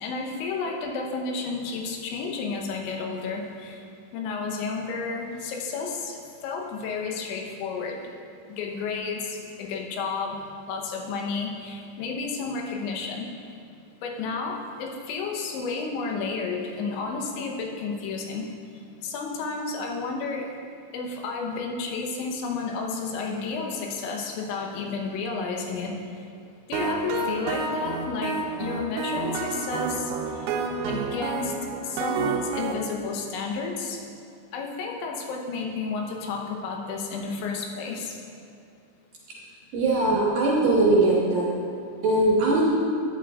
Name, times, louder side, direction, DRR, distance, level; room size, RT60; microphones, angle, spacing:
voice 1, 0.0-3.8 4.1-8.1 8.5-13.3 14.0-18.5 19.0-20.5 20.9-26.1 26.7-30.6 30.9-31.5 31.8-34.0 34.5-38.2, left 4 dB, 90° left, 1 dB, 3.3 m, -31 dB
sound 1, 26.7-32.7, right 4 dB, 85° right, 3.0 m, -30 dB
voice 2, 39.7-41.5 42.0-42.6, right 2 dB, 70° right, -5 dB, 2.3 m, -20 dB
13.5 x 9.5 x 2.4 m, 2.5 s
omnidirectional pair, 5.3 m